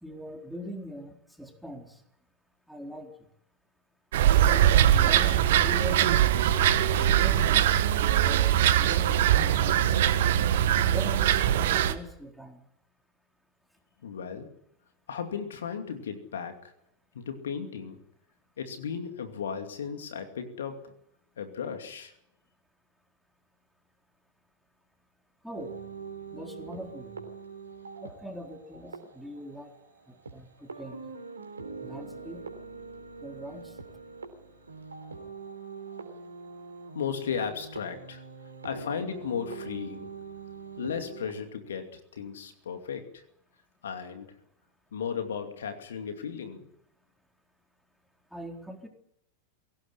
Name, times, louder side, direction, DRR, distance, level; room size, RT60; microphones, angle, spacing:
voice 1, 0.0-2.0 2.7-3.1 4.3-6.2 6.9-7.7 8.2-10.0 10.9-12.6 25.4-25.8 26.3-27.2 28.0-29.7 30.1-31.0 31.8-32.5 33.2-33.8 48.3-48.9, equal, ahead, 2 dB, 4.1 m, -42 dB
sound 1, 4.1-11.9, right 11 dB, 55° right, 1.6 m, -22 dB
voice 2, 14.0-14.5 15.1-16.7 17.1-18.0 18.6-20.9 21.4-22.1 36.9-38.2 38.6-40.1 40.8-43.2 43.8-44.4 44.9-46.7, left 7 dB, 65° left, 7 dB, 2.6 m, -35 dB
sound 2, 25.5-41.3, right 5 dB, 75° right, 3.7 m, -43 dB
23.5 x 17.5 x 9.9 m, 0.78 s
figure-of-eight pair, 90°, 0 cm